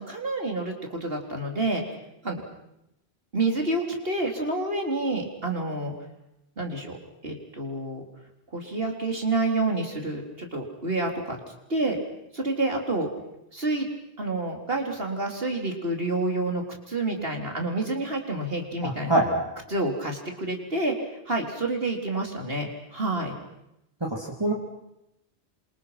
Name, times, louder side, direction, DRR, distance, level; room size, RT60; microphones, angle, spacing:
voice 1, 0.0-1.8 2.2-2.4 3.3-5.9 6.6-7.0 7.2-8.0 8.5-11.4 11.7-12.0 12.3-13.1 13.5-13.9 14.2-19.2 19.7-23.3, right 2 dB, 55° right, 2 dB, 4.3 m, -28 dB
voice 2, 18.8-19.4 24.0-24.5, right 1 dB, 20° right, -2 dB, 3.2 m, -24 dB
29.0 x 26.5 x 6.0 m, 0.83 s
omnidirectional pair, 1.2 m